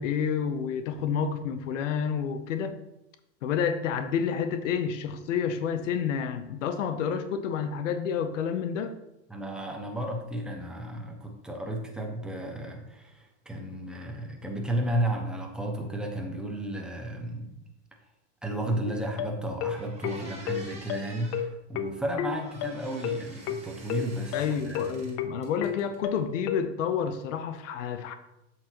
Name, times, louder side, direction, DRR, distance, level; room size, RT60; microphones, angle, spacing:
voice 1, 0.0-2.8 3.4-8.9 24.3-28.2, left 7 dB, 80° left, 9 dB, 0.8 m, -29 dB
voice 2, 9.3-17.5 18.4-25.2, right 1 dB, ahead, 1 dB, 1.0 m, -33 dB
sound 1, 18.9-26.6, left 9 dB, 40° left, 0.6 m, -32 dB
sound 2, 19.7-21.5 22.4-25.1 25.4-26.2, right 2 dB, 15° right, 2.0 m, -48 dB
7.5 x 6.2 x 2.9 m, 0.89 s
hypercardioid pair, 115°, 37 cm